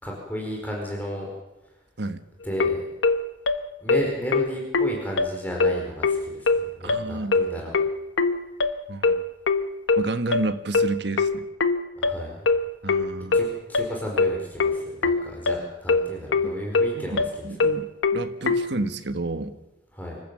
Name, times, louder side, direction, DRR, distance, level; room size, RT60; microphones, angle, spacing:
voice 1, 0.0-1.3 2.4-2.8 3.8-7.8 12.0-12.4 13.3-17.2 19.9-20.2, equal, 10° left, -1 dB, 4.6 m, -33 dB
sound 1, 2.6-18.7, left 3 dB, 80° left, 1.2 m, -22 dB
voice 2, 6.8-7.5 8.9-9.2 10.0-11.5 12.8-13.4 16.4-16.5 16.9-19.5, right 2 dB, 65° right, 9 dB, 1.3 m, -31 dB
26.0 x 14.5 x 7.8 m, 1.0 s
head